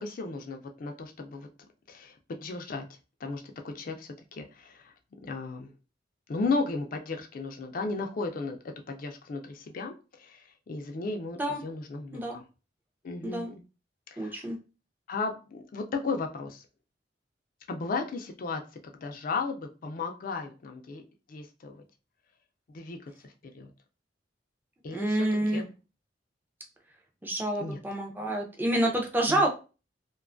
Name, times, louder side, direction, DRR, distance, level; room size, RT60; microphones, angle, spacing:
voice 1, 0.0-1.5 1.9-2.8 3.2-4.9 5.2-5.7 6.3-8.6 8.9-12.4 13.0-13.6 14.1-14.5 15.1-16.6 17.7-18.6 18.9-21.0 21.3-21.8 22.7-23.7 24.8-25.7 27.6-27.8 29.3-29.5, left 3 dB, 50° left, 4 dB, 0.4 m, -35 dB
voice 2, 14.2-14.6 24.9-25.6 27.2-29.5, right 1 dB, 10° right, 1 dB, 0.5 m, -28 dB
2.5 x 2.2 x 2.4 m, 0.32 s
head